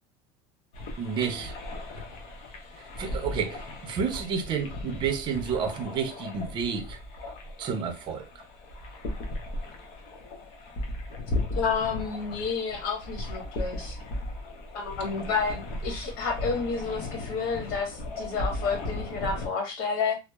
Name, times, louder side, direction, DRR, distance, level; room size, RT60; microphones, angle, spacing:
sound 1, 0.7-19.5, left 2 dB, 55° left, 0.8 m, -36 dB
voice 1, 1.0-1.5 3.0-7.0 7.6-8.2, right 6 dB, 40° right, 0.6 m, -30 dB
voice 2, 11.5-14.0 14.7-20.2, left 5 dB, 70° left, 1.1 m, -30 dB
2.8 x 2.0 x 2.2 m
supercardioid pair, 130°, 13 cm